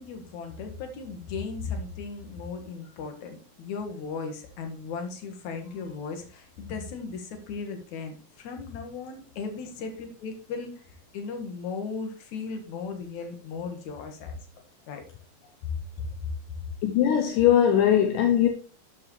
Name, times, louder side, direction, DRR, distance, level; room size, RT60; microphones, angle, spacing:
voice 1, 0.0-10.7 11.1-14.4 14.9-15.0 15.6-15.7 16.2-16.3, left 5 dB, 65° left, 3.0 m, -36 dB
voice 2, 16.8-18.5, left 10 dB, 80° left, 2.5 m, -20 dB
11.5 x 7.8 x 3.2 m
omnidirectional pair, 3.8 m